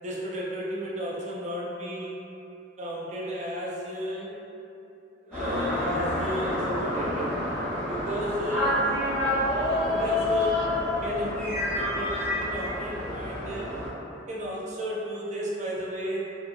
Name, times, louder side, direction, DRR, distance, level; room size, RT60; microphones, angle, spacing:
voice 1, 0.0-2.1 2.8-4.3 5.2-7.3 7.9-10.6 11.0-13.7 14.3-16.2, equal, 40° right, -5 dB, 0.5 m, -34 dB
sound 1, 5.3-13.9, left 1 dB, 5° left, 1.1 m, -28 dB
2.7 x 2.7 x 2.3 m, 2.8 s
head